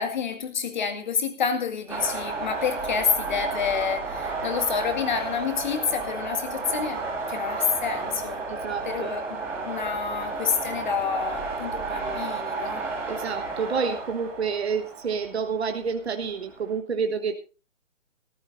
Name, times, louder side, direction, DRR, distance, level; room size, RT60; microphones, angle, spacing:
voice 1, 0.0-8.4 8.8-9.4 9.6-12.9, left 6 dB, 40° left, 6 dB, 2.2 m, -28 dB
sound 1, 1.9-16.7, right 3 dB, 5° right, 2.4 m, -32 dB
voice 2, 8.5-9.1 13.1-17.4, right 5 dB, 55° right, 6 dB, 1.4 m, -29 dB
17.5 x 14.0 x 2.7 m, 0.34 s
hypercardioid pair, 170°, 38 cm